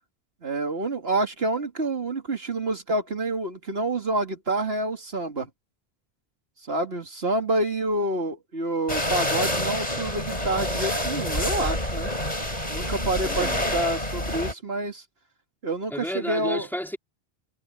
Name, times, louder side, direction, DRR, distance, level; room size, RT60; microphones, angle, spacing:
voice 1, 0.4-5.5 6.7-12.1 12.7-15.0 15.6-16.7, right 2 dB, 75° right, 2.5 m, -28 dB
sound 1, 8.9-14.5, left 1 dB, 40° left, 6.6 m, -27 dB
voice 2, 13.2-13.9 15.9-17.0, equal, ahead, 3.4 m, -32 dB
omnidirectional pair, 1.0 m